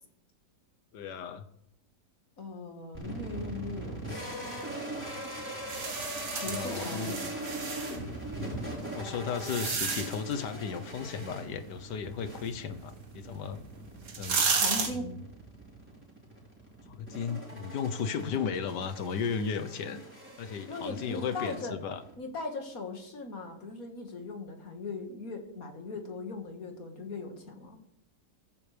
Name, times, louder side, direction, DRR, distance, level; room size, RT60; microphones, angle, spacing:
voice 1, 0.9-1.4 6.4-7.1 8.9-13.6 14.2-14.5 14.9-15.2 16.9-20.0 20.4-22.0, left 6 dB, 90° left, 11 dB, 1.6 m, -35 dB
voice 2, 2.4-4.7 6.3-7.2 14.6-15.2 20.7-21.8 22.2-27.8, left 3 dB, 60° left, 3 dB, 2.2 m, -39 dB
sound 1, 2.9-22.1, right 1 dB, 5° right, 4.4 m, -41 dB
sound 2, 5.7-8.0 8.7-10.3 13.3-13.4 14.0-14.9, right 5 dB, 60° right, 1.9 m, -32 dB
15.0 x 14.5 x 3.4 m, 0.74 s
omnidirectional pair, 1.8 m